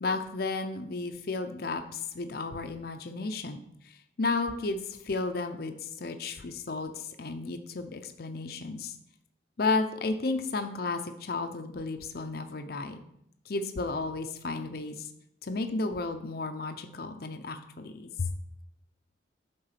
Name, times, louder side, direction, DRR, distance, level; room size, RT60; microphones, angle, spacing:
voice 1, 0.0-9.0 9.6-13.0 13.5-15.1 15.4-18.3, left 3 dB, 55° left, 7 dB, 0.6 m, -33 dB
8.8 x 3.8 x 5.7 m, 0.76 s
head